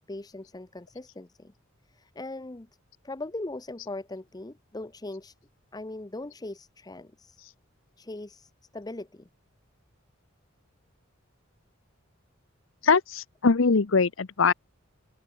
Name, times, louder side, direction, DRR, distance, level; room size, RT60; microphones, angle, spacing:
voice 1, 0.0-1.5 1.9-2.7 3.0-5.3 5.7-7.4 8.0-9.3, left 2 dB, 20° left, 0.7 m, -40 dB
voice 2, 12.8-14.5, left 4 dB, 70° left, 0.8 m, -22 dB
open air
head